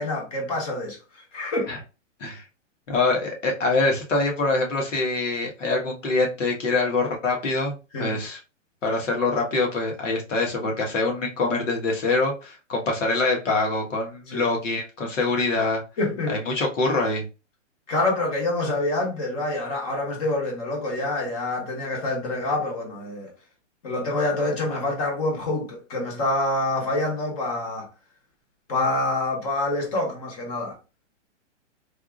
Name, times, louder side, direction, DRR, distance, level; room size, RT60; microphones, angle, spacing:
voice 1, 0.0-1.7 7.9-8.2 14.3-14.5 16.0-16.4 17.9-23.3 23.8-27.9 28.7-30.8, left 2 dB, 30° left, 1.0 m, -26 dB
voice 2, 2.9-8.4 8.8-15.8 16.3-17.2, left 3 dB, 80° left, 1.6 m, -24 dB
3.5 x 2.6 x 2.5 m
hypercardioid pair, 170°, 37 cm